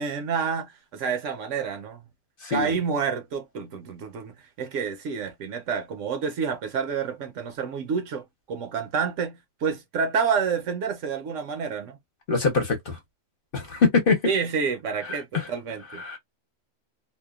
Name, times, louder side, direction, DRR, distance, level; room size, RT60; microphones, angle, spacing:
voice 1, 0.0-2.1 2.5-12.0 14.2-16.0, right 6 dB, 70° right, 1.0 m, -29 dB
voice 2, 2.4-2.8 12.3-13.0 13.5-14.2 15.0-15.5 16.0-16.2, left 4 dB, 50° left, 0.9 m, -24 dB
2.7 x 2.2 x 2.3 m
omnidirectional pair, 1.4 m